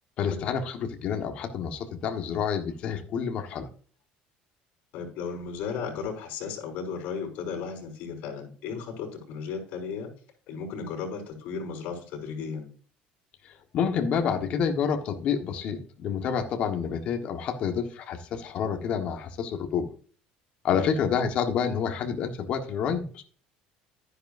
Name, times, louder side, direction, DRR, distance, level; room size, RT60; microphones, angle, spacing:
voice 1, 0.2-3.7 13.7-19.9 20.6-23.2, left 7 dB, 40° left, 4 dB, 1.4 m, -28 dB
voice 2, 4.9-10.1 10.5-12.7 20.7-21.0, left 6 dB, 60° left, 1 dB, 5.4 m, -35 dB
12.0 x 10.0 x 2.6 m, 0.42 s
cardioid pair, 175°, 3 cm